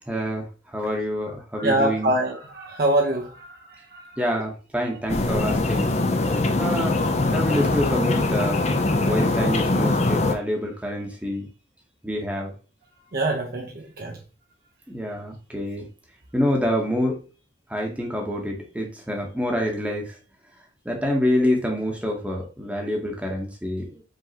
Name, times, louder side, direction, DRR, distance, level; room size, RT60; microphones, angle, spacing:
voice 1, 0.1-2.1 4.2-5.9 6.2-7.0 7.3-8.6 9.0-11.5 12.0-12.5 13.6-13.7 14.9-15.9 16.3-17.2 17.7-20.2 20.8-24.0, equal, 5° right, 0 dB, 0.9 m, -27 dB
voice 2, 1.6-4.3 13.1-14.2, right 1 dB, 55° right, -1 dB, 0.8 m, -25 dB
sound 1, 5.1-10.3, left 2 dB, 35° left, 0.5 m, -22 dB
5.0 x 3.5 x 2.8 m, 0.34 s
head